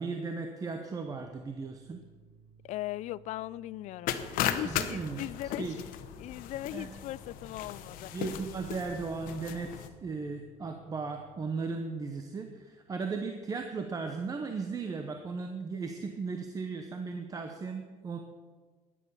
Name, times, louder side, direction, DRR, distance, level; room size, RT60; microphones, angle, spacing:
voice 1, 0.0-2.0 4.5-5.3 5.6-5.7 6.7-6.9 8.1-18.2, right 4 dB, 25° right, 0.9 m, -36 dB
sound 1, 1.0-11.6, right 6 dB, 50° right, 2.1 m, -59 dB
voice 2, 2.6-5.8 6.2-8.1, left 15 dB, 60° left, 0.4 m, -39 dB
sound 2, 4.1-9.9, left 10 dB, 85° left, 1.0 m, -36 dB
12.5 x 10.0 x 6.9 m
cardioid pair, 160°, 14 cm